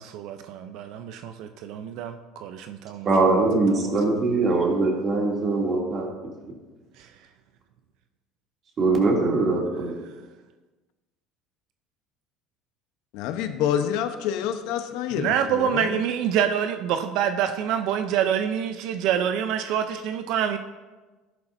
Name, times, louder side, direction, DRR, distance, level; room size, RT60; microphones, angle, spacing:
voice 1, 0.0-3.3 3.8-4.0 7.0-7.1 15.2-20.6, right 9 dB, 70° right, 8 dB, 0.6 m, -26 dB
voice 2, 3.0-6.1 8.8-9.9, right 3 dB, 40° right, -1 dB, 2.7 m, -22 dB
voice 3, 13.1-16.1, left 9 dB, 75° left, 8 dB, 0.9 m, -27 dB
13.5 x 11.0 x 2.7 m, 1.2 s
supercardioid pair, 115°, 0 cm